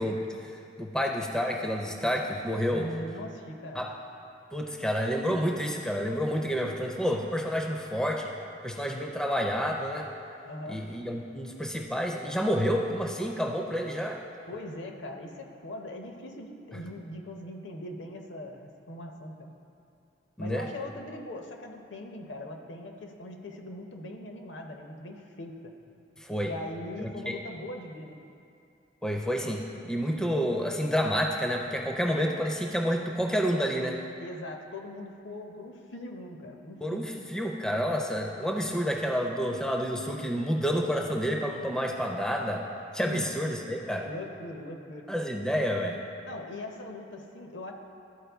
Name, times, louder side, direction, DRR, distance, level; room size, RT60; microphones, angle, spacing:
voice 1, 0.0-2.9 3.7-3.9 4.5-8.3 8.6-10.1 10.7-14.2 20.4-20.7 26.2-26.5 27.0-27.4 29.0-34.0 36.8-42.6 42.9-44.1 45.1-46.0, equal, 5° left, 1 dB, 0.4 m, -29 dB
voice 2, 2.7-3.9 10.4-10.8 14.5-19.5 20.4-25.7 26.4-28.2 34.2-37.1 43.0-43.3 44.0-45.2 46.2-47.7, left 1 dB, 70° left, 3 dB, 0.7 m, -41 dB
12.0 x 4.3 x 3.4 m, 2.7 s
head